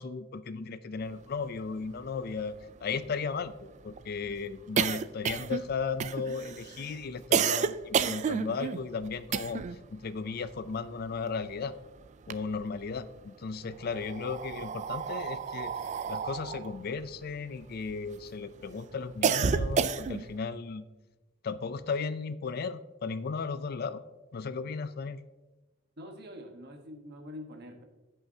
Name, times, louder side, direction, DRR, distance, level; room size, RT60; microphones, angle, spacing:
voice 1, 0.0-2.6 2.8-9.6 9.9-11.7 12.3-15.7 16.1-20.8 21.4-24.0 24.3-25.2, left 5 dB, 50° left, 14 dB, 0.4 m, -35 dB
sound 1, 1.6-1.7 2.0-2.1 2.4-9.9 10.1-11.7 12.0-13.0 13.7-18.2 18.6-20.4, right 6 dB, 35° right, 0.3 m, -31 dB
voice 2, 26.0-27.8, left 1 dB, 55° right, 3 dB, 1.2 m, -45 dB
16.5 x 5.7 x 2.8 m, 1.1 s
head